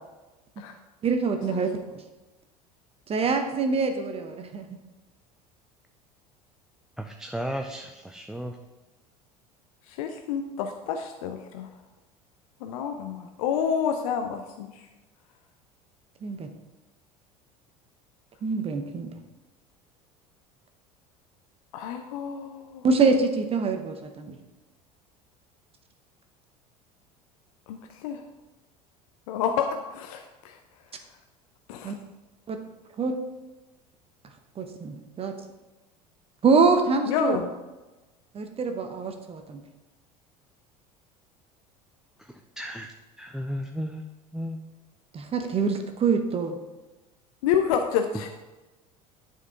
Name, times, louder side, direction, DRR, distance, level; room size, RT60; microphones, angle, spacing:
voice 1, 1.0-1.7 3.1-4.6 16.2-16.5 18.4-19.1 22.8-24.4 31.8-31.9 32.5-32.6 33.0-33.2 34.6-35.3 36.4-37.4 38.3-39.6 45.1-46.6, right 4 dB, 30° right, 6 dB, 0.8 m, -25 dB
voice 2, 7.0-8.6 42.2-44.1 44.3-44.6, equal, 5° right, 4 dB, 0.5 m, -35 dB
voice 3, 9.9-11.7 12.6-14.9 21.7-22.9 27.7-28.2 29.3-30.6 31.7-31.9 37.1-37.5 47.4-48.3, left 7 dB, 60° left, 5 dB, 0.6 m, -29 dB
10.5 x 4.5 x 3.6 m, 1.1 s
figure-of-eight pair, 70°, 20 cm